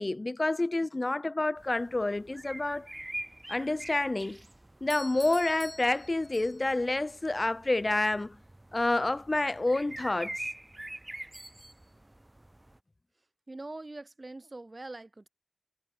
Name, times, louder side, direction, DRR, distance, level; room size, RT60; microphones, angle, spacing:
voice 1, 0.0-2.9 3.5-4.4 4.8-8.4 8.7-10.4, left 2 dB, 50° left, 1.1 m, -28 dB
sound 1, 1.6-12.8, right 1 dB, 30° right, 1.9 m, -45 dB
Doorbell, 4.9-6.9, equal, 10° left, 6.2 m, -47 dB
voice 2, 13.1-15.3, right 2 dB, 50° right, 4.8 m, -44 dB
wide cardioid pair, 40°, 0 cm